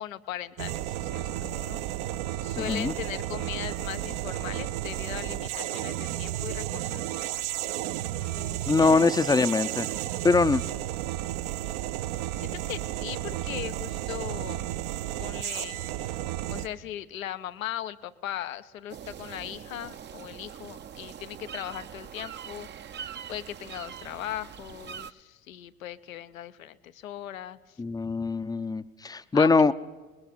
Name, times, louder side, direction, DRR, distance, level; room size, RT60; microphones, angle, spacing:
voice 1, 0.0-1.8 2.4-7.3 8.1-9.0 9.3-9.5 12.3-14.7 15.2-16.2 16.5-22.7 23.3-27.8 29.3-29.5, left 12 dB, 75° left, 12 dB, 0.9 m, -39 dB
sound 1, 0.6-16.7, right 13 dB, 55° right, 0.9 m, -32 dB
voice 2, 2.6-2.9 8.7-9.9 10.2-10.6 27.8-29.7, left 4 dB, 10° left, 13 dB, 0.7 m, -23 dB
sound 2, 18.9-25.1, right 8 dB, 25° right, 0.7 m, -43 dB
30.0 x 21.0 x 4.2 m, 1.2 s
figure-of-eight pair, 65°, 41 cm